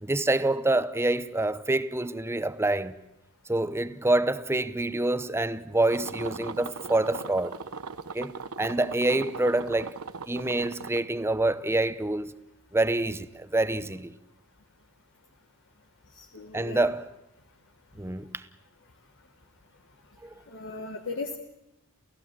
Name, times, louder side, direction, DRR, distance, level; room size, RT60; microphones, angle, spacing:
voice 1, 0.0-2.9 3.5-7.5 8.1-9.9 10.3-12.3 12.7-14.1 16.5-17.1 18.0-18.3 20.2-20.3, right 2 dB, 10° right, 0.7 m, -26 dB
sound 1, 5.9-11.0, right 5 dB, 70° right, 0.9 m, -39 dB
voice 2, 16.2-16.9 20.5-21.4, left 3 dB, 55° left, 1.3 m, -37 dB
29.0 x 15.5 x 7.6 m
head